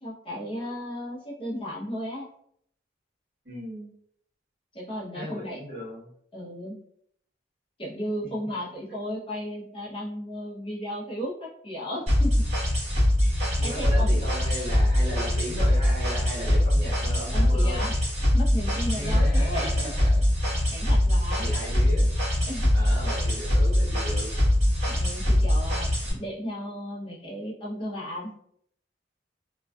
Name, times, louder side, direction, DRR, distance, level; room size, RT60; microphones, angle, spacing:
voice 1, 0.0-2.3 4.7-5.6 6.3-6.8 7.8-12.4 13.2-14.2 17.3-17.9 18.3-19.7 20.5-21.5 22.5-23.1 24.9-28.3, equal, 30° left, -6 dB, 0.6 m, -35 dB
voice 2, 3.4-3.9 5.1-6.0 8.2-8.5 13.6-17.8 18.9-20.1 21.4-22.1 22.4-24.3, equal, 55° right, -6 dB, 1.1 m, -36 dB
sound 1, 12.1-26.1, left 1 dB, 35° right, 1.0 m, -23 dB
2.5 x 2.2 x 2.2 m, 0.68 s
head